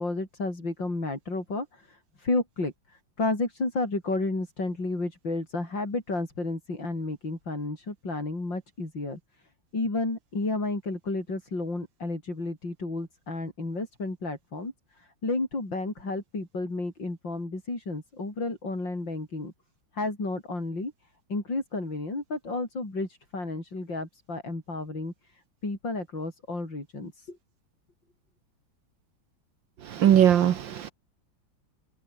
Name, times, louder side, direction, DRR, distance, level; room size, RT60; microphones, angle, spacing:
voice 1, 0.0-2.7 3.2-9.2 9.7-14.7 15.0-19.5 19.9-20.9 21.3-25.1 25.6-27.4, left 2 dB, 65° left, 7.5 m, -32 dB
voice 2, 29.9-30.9, right 10 dB, 70° right, 1.8 m, -20 dB
omnidirectional pair, 2.1 m